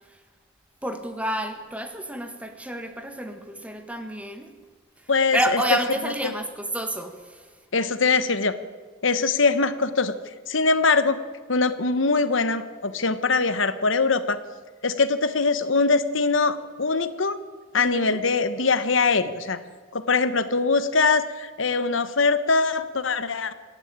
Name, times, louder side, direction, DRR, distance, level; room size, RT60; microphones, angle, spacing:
voice 1, 0.8-4.5 5.0-7.5 17.8-18.2, right 1 dB, 5° right, 6 dB, 1.6 m, -29 dB
voice 2, 5.1-5.6 7.7-8.6 9.0-10.2 10.5-11.2 11.5-14.4 14.8-17.4 17.7-19.6 19.9-23.5, left 4 dB, 75° left, 12 dB, 1.2 m, -22 dB
27.0 x 11.0 x 8.8 m, 1.4 s
head